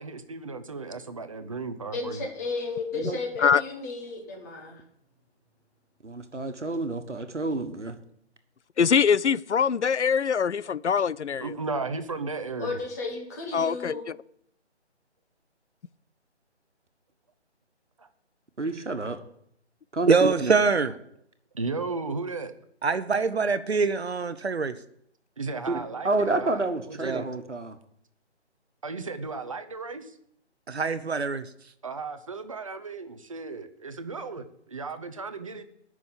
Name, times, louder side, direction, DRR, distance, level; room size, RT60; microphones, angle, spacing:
voice 1, 0.0-2.2 11.4-12.8 18.0-18.1 21.5-22.5 25.4-26.6 26.9-27.3 28.8-30.1 31.8-35.6, right 3 dB, 30° right, 0.7 m, -35 dB
voice 2, 1.9-4.8 12.6-14.1, left 3 dB, 15° left, 1.3 m, -33 dB
voice 3, 6.0-8.0 18.6-19.2 19.9-20.5 25.7-27.8, right 2 dB, 85° right, 1.4 m, -29 dB
voice 4, 8.8-11.5 13.5-14.2, left 6 dB, 80° left, 0.5 m, -23 dB
voice 5, 20.1-20.9 22.8-24.7 27.0-27.2 30.7-31.5, right 4 dB, 65° right, 0.9 m, -24 dB
9.3 x 6.2 x 8.4 m
figure-of-eight pair, 150°, 35 cm